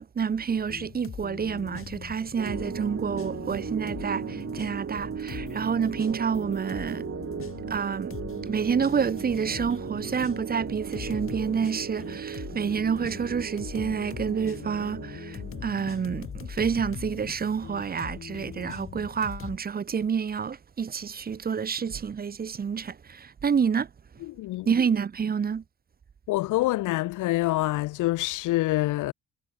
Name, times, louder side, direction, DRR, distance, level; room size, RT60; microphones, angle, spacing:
voice 1, 0.0-7.0 7.7-8.1 8.5-15.4 15.6-23.9 24.7-25.6, right 6 dB, 30° right, 0.7 m, -28 dB
sound 1, 0.6-19.6, left 7 dB, 45° left, 2.2 m, -41 dB
sound 2, 2.4-16.7, right 7 dB, 45° right, 2.4 m, -37 dB
voice 2, 24.4-24.7 26.3-29.1, left 18 dB, 85° left, 0.9 m, -26 dB
cardioid pair, 90°, 30 cm